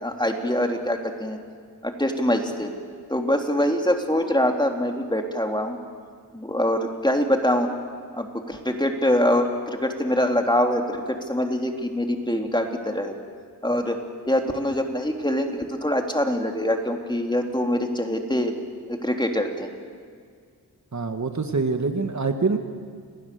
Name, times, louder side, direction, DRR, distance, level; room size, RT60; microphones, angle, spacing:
voice 1, 0.0-1.4 1.8-2.7 3.1-5.8 6.3-7.7 8.1-13.2 13.6-14.0 14.3-18.5 18.9-19.7, left 1 dB, 10° left, 3 dB, 2.9 m, -24 dB
voice 2, 20.9-22.6, right 4 dB, 45° right, 6 dB, 1.7 m, -25 dB
28.5 x 19.0 x 6.8 m, 2.1 s
cardioid pair, 55°, 39 cm